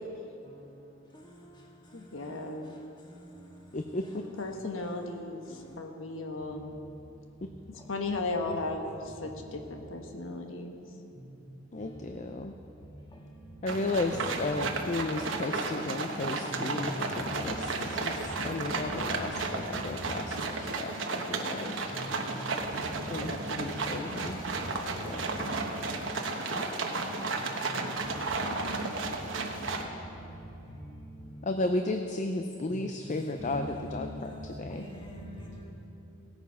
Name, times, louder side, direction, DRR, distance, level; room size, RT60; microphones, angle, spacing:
voice 1, 1.9-2.8 4.4-6.6 7.7-10.7, left 2 dB, 90° left, 1.2 m, -36 dB
voice 2, 3.7-4.2 11.7-12.6 13.6-21.8 23.1-24.4 25.0-25.2 26.2-26.3 31.4-34.8, left 2 dB, 40° left, 0.5 m, -34 dB
sound 1, 13.7-29.8, right 3 dB, 70° right, 1.1 m, -33 dB
voice 3, 17.2-17.7 18.5-18.7 21.6-21.7 22.9-23.1 32.4-32.5 33.4-35.6, equal, 25° left, 2.0 m, -42 dB
17.0 x 8.9 x 5.7 m
head